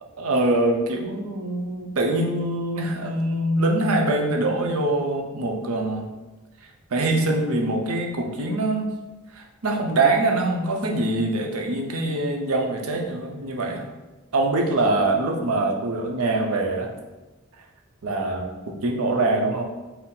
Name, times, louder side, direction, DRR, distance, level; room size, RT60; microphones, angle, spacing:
voice 1, 0.2-6.1 6.9-8.9 9.4-13.8 14.3-16.9 18.0-19.6, right 2 dB, 85° right, 2 dB, 0.6 m, -24 dB
4.3 x 2.0 x 3.8 m, 1.1 s
head